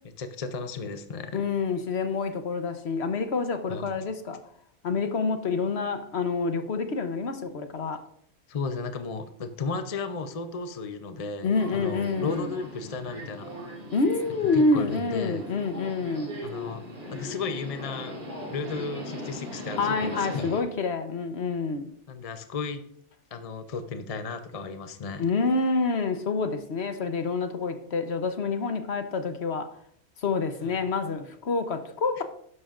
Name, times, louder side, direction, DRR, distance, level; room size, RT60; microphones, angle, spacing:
voice 1, 0.2-1.4 3.7-4.0 8.5-13.5 14.5-15.4 16.4-16.8 17.1-18.1 18.5-20.6 22.1-22.8 23.3-25.3 30.6-30.8 32.2-32.3, left 4 dB, 35° left, 0.6 m, -34 dB
voice 2, 1.3-4.4 4.8-8.0 11.4-12.5 13.9-16.5 19.8-21.9 25.2-29.7 30.2-32.2, left 4 dB, 55° left, 1.1 m, -27 dB
Subway metro underground, 11.5-20.6, equal, 35° right, 2.4 m, -39 dB
12.5 x 11.0 x 2.5 m
omnidirectional pair, 1.4 m